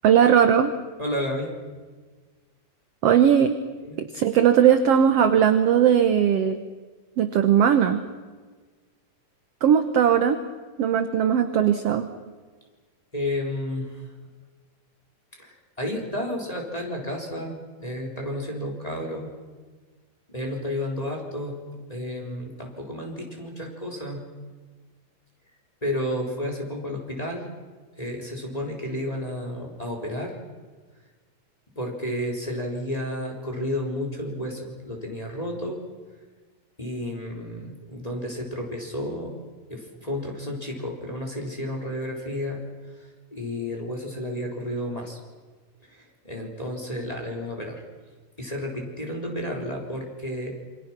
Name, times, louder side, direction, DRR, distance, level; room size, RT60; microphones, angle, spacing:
voice 1, 0.0-0.7 3.0-3.6 4.0-6.6 7.2-8.0 9.6-10.4 10.8-12.1, right 8 dB, 65° right, 9 dB, 1.6 m, -19 dB
voice 2, 1.0-1.5 3.8-4.0 13.1-14.1 15.4-19.3 20.3-21.6 21.9-24.2 25.8-27.4 28.0-30.4 31.8-35.8 36.8-39.3 39.7-42.6 43.0-45.2 45.9-47.8 48.4-50.6, left 1 dB, 10° left, 0 dB, 3.9 m, -31 dB
27.5 x 25.0 x 6.0 m, 1.4 s
omnidirectional pair, 4.0 m